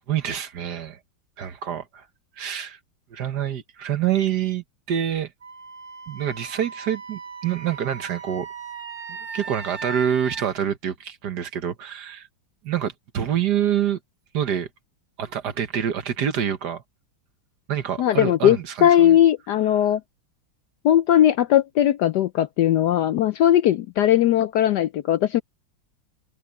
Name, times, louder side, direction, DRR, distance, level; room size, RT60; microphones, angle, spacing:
voice 1, 0.1-1.0 1.4-2.0 2.4-2.8 3.1-5.3 6.1-8.5 9.3-12.3 12.6-14.0 14.3-14.7 15.2-16.8 17.7-19.2, right 9 dB, 60° right, 1.6 m, -26 dB
Wind instrument woodwind instrument, 5.4-10.5, right 5 dB, 25° right, 2.9 m, -38 dB
voice 2, 18.0-20.0 20.8-25.4, left 11 dB, 75° left, 1.0 m, -19 dB
omnidirectional pair, 2.2 m